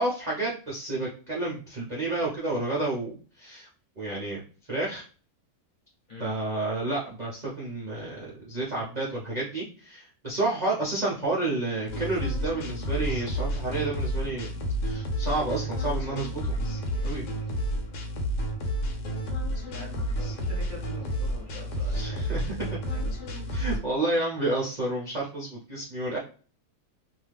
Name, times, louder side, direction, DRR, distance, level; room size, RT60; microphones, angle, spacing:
voice 1, 0.0-3.7 4.0-4.4 4.7-5.0 6.2-14.5 14.8-16.4 17.0-17.2 21.9-22.5 23.5-26.2, right 2 dB, 55° right, -5 dB, 0.4 m, -30 dB
sound 1, 11.9-23.8, equal, 85° left, 1.3 m, -30 dB
voice 2, 19.7-23.5, left 2 dB, 35° left, -3 dB, 1.1 m, -45 dB
2.8 x 2.3 x 3.3 m, 0.39 s
omnidirectional pair, 1.8 m